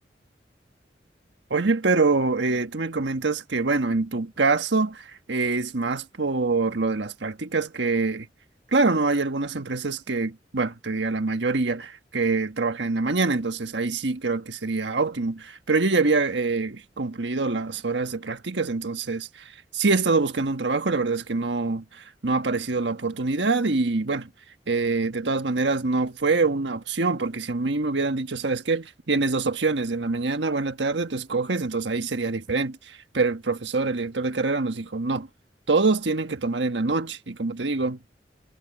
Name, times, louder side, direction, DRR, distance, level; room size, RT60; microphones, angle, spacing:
voice 1, 1.5-8.3 8.7-24.3 24.7-35.3 35.7-38.0, right 3 dB, 90° right, 1.4 m, -25 dB
head